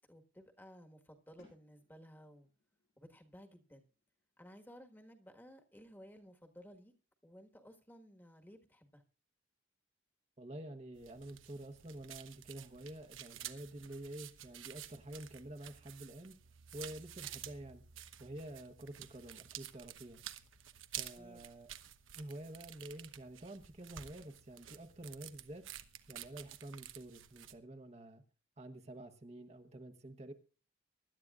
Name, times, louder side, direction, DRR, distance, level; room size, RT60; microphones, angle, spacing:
voice 1, 0.1-2.5 3.0-3.9 4.4-6.9 7.2-9.0 20.9-21.4, equal, 10° left, 5 dB, 1.5 m, -57 dB
sound 1, 1.4-7.1, left 2 dB, 85° left, 7.8 m, -71 dB
voice 2, 10.4-16.3 16.7-17.8 18.2-20.2 21.0-21.7 22.1-25.7 26.1-28.2 28.6-30.3, right 1 dB, 35° right, 5 dB, 1.1 m, -49 dB
sound 2, 10.9-27.5, right 11 dB, 85° right, 1.0 m, -51 dB
24.0 x 11.5 x 2.4 m, 0.35 s
head